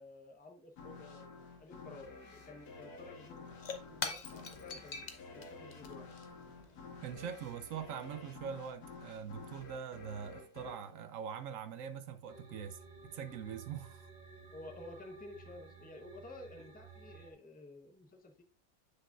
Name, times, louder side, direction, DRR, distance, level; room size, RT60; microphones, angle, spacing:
voice 1, 0.0-3.5 3.9-6.1 14.5-18.4, left 2 dB, 15° left, 0.3 m, -52 dB
sound 1, 0.8-12.0, left 4 dB, 60° left, 1.8 m, -52 dB
Shatter / Crushing, 3.0-7.9, left 4 dB, 85° left, 0.4 m, -46 dB
voice 2, 7.0-14.1, right 7 dB, 70° right, 0.7 m, -43 dB
sound 2, 12.3-17.3, right 4 dB, 30° right, 1.0 m, -54 dB
7.5 x 6.5 x 2.4 m
omnidirectional pair, 2.0 m